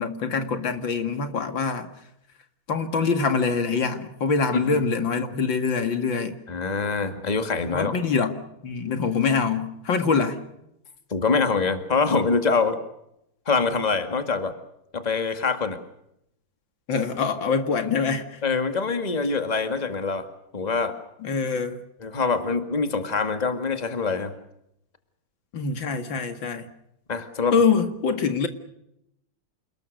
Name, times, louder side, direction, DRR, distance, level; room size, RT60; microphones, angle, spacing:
voice 1, 0.0-1.9 2.7-6.4 7.7-10.4 16.9-18.4 21.2-21.8 25.5-26.7 27.5-28.5, left 5 dB, 75° left, 8 dB, 2.7 m, -24 dB
voice 2, 6.5-7.9 11.1-12.8 13.5-14.5 14.9-15.8 18.4-20.3 20.5-20.9 22.0-24.3 27.1-27.6, left 4 dB, 20° left, 8 dB, 2.1 m, -24 dB
29.0 x 20.5 x 6.6 m, 0.80 s
omnidirectional pair, 2.1 m